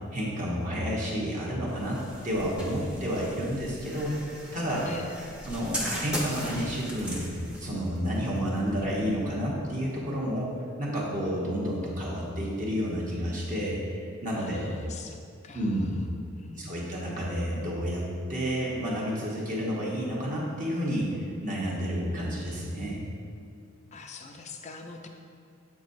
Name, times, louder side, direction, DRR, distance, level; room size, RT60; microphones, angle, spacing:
voice 1, 0.1-4.1 4.5-4.8 5.5-7.2 7.6-14.7 15.5-16.0 16.6-23.0, equal, 35° right, -5 dB, 1.1 m, -30 dB
sound 1, 1.7-9.5, equal, 5° right, 0.7 m, -39 dB
voice 2, 4.8-5.2 14.3-15.2 15.4-16.0 16.3-17.0 23.9-25.1, left 4 dB, 30° left, 4 dB, 0.4 m, -44 dB
7.4 x 6.0 x 2.6 m, 2.4 s
head